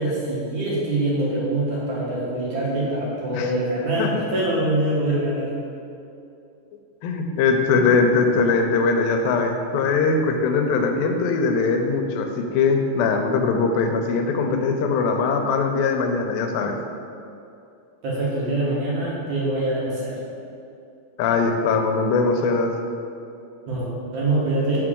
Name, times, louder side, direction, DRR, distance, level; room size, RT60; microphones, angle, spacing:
voice 1, 0.0-5.5 18.0-20.2 23.7-24.8, right 1 dB, 60° right, -7 dB, 2.4 m, -24 dB
voice 2, 7.0-16.7 21.2-22.7, left 4 dB, 90° left, 4 dB, 2.4 m, -21 dB
6.6 x 5.8 x 3.7 m, 2.6 s
omnidirectional pair, 4.1 m